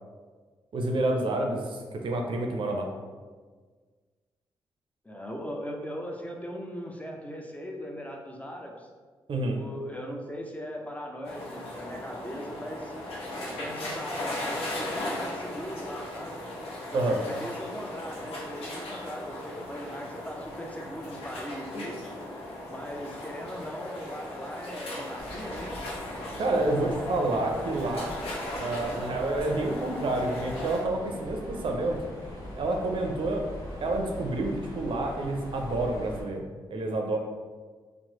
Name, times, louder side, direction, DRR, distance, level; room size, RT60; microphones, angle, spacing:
voice 1, 0.7-2.9 9.3-9.6 16.9-17.2 26.4-28.2 28.6-32.0 32.6-33.5 33.8-37.2, right 2 dB, 60° right, 2 dB, 0.4 m, -28 dB
voice 2, 5.0-8.9 9.6-13.0 13.4-16.4 16.9-22.0 22.7-25.8 26.5-27.3, equal, 15° left, 1 dB, 0.5 m, -39 dB
sound 1, 11.2-30.8, left 1 dB, 75° left, 0.6 m, -38 dB
Mechanisms, 25.2-36.2, left 1 dB, 35° left, 1.0 m, -42 dB
2.9 x 2.0 x 2.9 m, 1.5 s
supercardioid pair, 50°, 10 cm